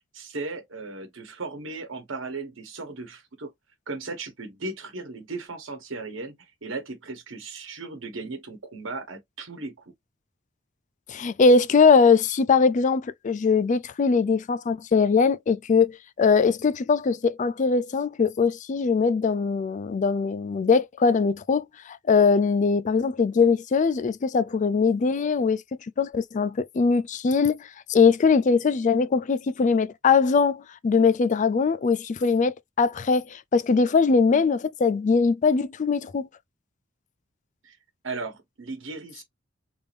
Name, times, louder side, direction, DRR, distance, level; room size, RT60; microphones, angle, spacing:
voice 1, 0.1-3.5 3.9-6.3 6.6-9.8 37.6-37.8 38.0-39.2, right 3 dB, 75° right, 1.2 m, -36 dB
voice 2, 11.1-25.6 26.0-27.6 27.9-36.3, left 5 dB, 40° left, 0.4 m, -21 dB
3.4 x 2.6 x 3.4 m
head